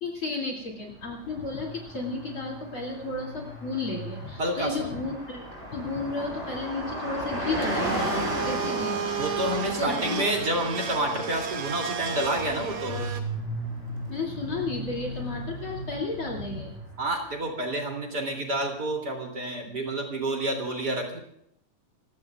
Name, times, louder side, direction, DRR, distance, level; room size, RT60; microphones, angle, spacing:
voice 1, 0.0-5.4 5.7-8.1 8.4-9.0 9.8-10.1 14.1-16.8, left 3 dB, 45° left, 0 dB, 3.5 m, -33 dB
Car passing by, 1.1-17.1, equal, 20° right, 6.6 m, -36 dB
voice 2, 4.4-4.9 9.2-13.0 17.0-21.2, right 1 dB, 35° right, 1 dB, 3.4 m, -29 dB
Domestic sounds home sounds, 7.6-13.2, right 6 dB, 75° right, 3.3 m, -32 dB
29.5 x 17.5 x 2.5 m, 0.72 s
omnidirectional pair, 3.3 m